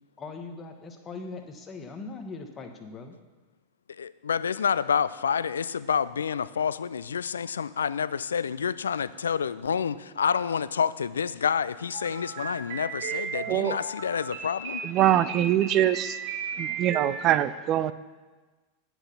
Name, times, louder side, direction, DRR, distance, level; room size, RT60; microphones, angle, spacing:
voice 1, 0.2-3.1, left 3 dB, 20° left, 5 dB, 1.1 m, -40 dB
voice 2, 4.0-14.8, left 7 dB, 70° left, 17 dB, 0.3 m, -28 dB
sound 1, 11.9-17.1, right 5 dB, 50° right, 1.7 m, -35 dB
voice 3, 13.5-13.8 14.8-16.2 16.6-17.9, right 12 dB, 35° right, 15 dB, 0.4 m, -23 dB
9.5 x 6.0 x 6.7 m, 1.3 s
figure-of-eight pair, 90°, 0 cm